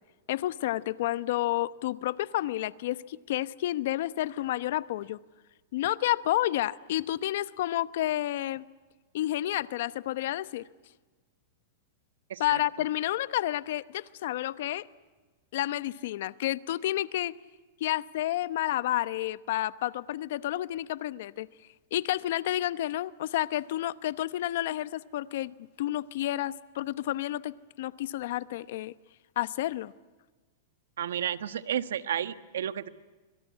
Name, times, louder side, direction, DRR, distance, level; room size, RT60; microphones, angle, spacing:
voice 1, 0.3-5.2 5.7-8.6 9.1-10.7 12.4-14.9 15.5-17.4 17.8-21.5 21.9-28.9 29.4-29.9, left 14 dB, 65° left, 0.9 m, -30 dB
voice 2, 31.0-32.9, right 10 dB, 85° right, 1.3 m, -32 dB
25.5 x 23.5 x 9.6 m
hypercardioid pair, 130°, 0 cm